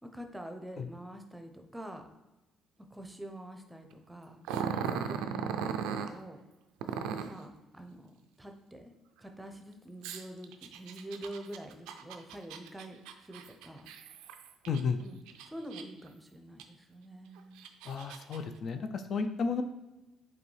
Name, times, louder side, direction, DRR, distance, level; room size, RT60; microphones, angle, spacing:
voice 1, 0.0-2.1 2.9-4.4 5.1-6.4 7.3-8.9 9.2-13.9 15.0-15.2 15.5-17.7, right 1 dB, 10° right, 5 dB, 0.7 m, -46 dB
Growling, 4.4-6.1 6.8-7.4 10.0-14.8 15.3-16.1 16.6-16.7 17.4-18.4, right 7 dB, 80° right, 0.3 m, -37 dB
voice 2, 14.7-15.0 17.9-19.6, left 5 dB, 55° left, 8 dB, 0.4 m, -32 dB
5.0 x 2.8 x 3.3 m, 1.0 s
hypercardioid pair, 60°, 0 cm